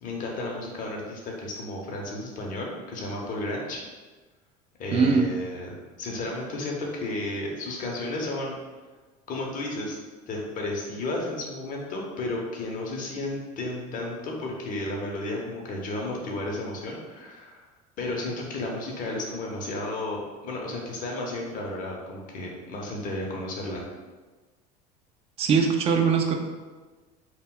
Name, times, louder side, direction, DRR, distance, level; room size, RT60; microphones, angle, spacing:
voice 1, 0.0-3.8 4.8-8.6 9.3-10.0 10.3-17.6 18.0-23.9, left 2 dB, 40° left, -1 dB, 0.7 m, -33 dB
voice 2, 4.9-5.3 25.4-26.3, right 5 dB, 30° right, 4 dB, 0.3 m, -21 dB
2.2 x 2.0 x 3.6 m, 1.3 s
supercardioid pair, 100°, 20 cm